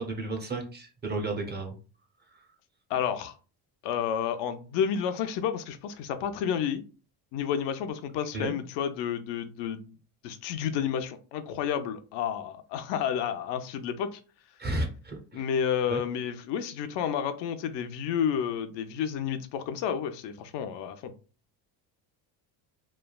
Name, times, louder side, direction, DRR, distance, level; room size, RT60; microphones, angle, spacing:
voice 1, 0.0-1.8 8.3-8.5 14.6-15.4 15.9-16.0, right 2 dB, 25° right, 2 dB, 0.6 m, -33 dB
voice 2, 2.9-3.4 3.8-6.8 7.3-10.0 10.2-14.2 15.3-21.1, left 8 dB, 70° left, 9 dB, 0.5 m, -30 dB
3.2 x 2.2 x 2.2 m, 0.35 s
cardioid pair, 120°, 45 cm